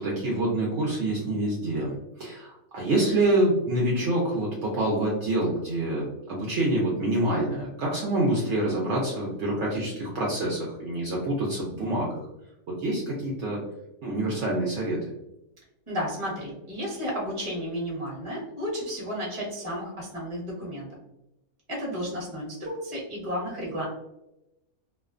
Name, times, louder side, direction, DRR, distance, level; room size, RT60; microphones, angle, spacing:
voice 1, 0.0-12.1 12.7-13.6 14.0-15.0, right 1 dB, 65° right, -3 dB, 0.8 m, -26 dB
voice 2, 15.9-20.9 21.7-23.9, equal, 25° right, -4 dB, 0.9 m, -32 dB
2.4 x 2.1 x 2.4 m, 0.89 s
omnidirectional pair, 1.5 m